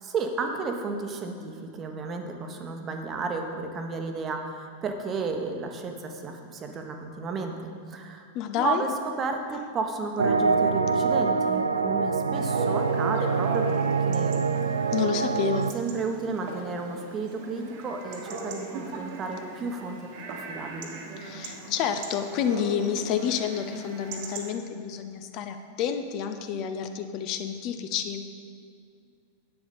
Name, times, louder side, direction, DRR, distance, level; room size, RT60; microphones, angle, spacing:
voice 1, 0.0-8.3 8.6-8.9 9.2-14.5 15.7-20.9, right 4 dB, 25° right, 4 dB, 1.1 m, -33 dB
voice 2, 8.3-8.8 14.9-15.7 21.2-28.2, left 8 dB, 40° left, 7 dB, 0.6 m, -29 dB
sound 1, 10.2-15.7, right 5 dB, 75° right, 0.3 m, -25 dB
Chatter / Bark / Livestock farm animals working animals, 12.3-24.5, right 2 dB, 50° right, 1.4 m, -39 dB
10.5 x 8.4 x 4.1 m, 2.5 s
figure-of-eight pair, 90°, 0 cm